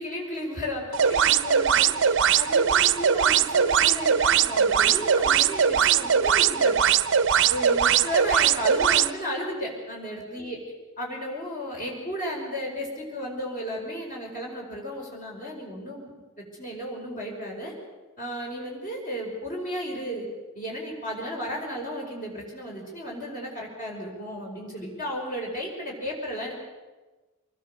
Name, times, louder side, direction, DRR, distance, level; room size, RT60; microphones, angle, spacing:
voice 1, 0.0-6.8 7.4-10.6 11.0-16.1 16.4-17.7 18.2-20.3 20.5-26.5, equal, 40° left, -2 dB, 5.3 m, -34 dB
sound 1, 0.9-9.1, right 8 dB, 55° right, 0.7 m, -21 dB
24.5 x 20.5 x 6.8 m, 1.2 s
head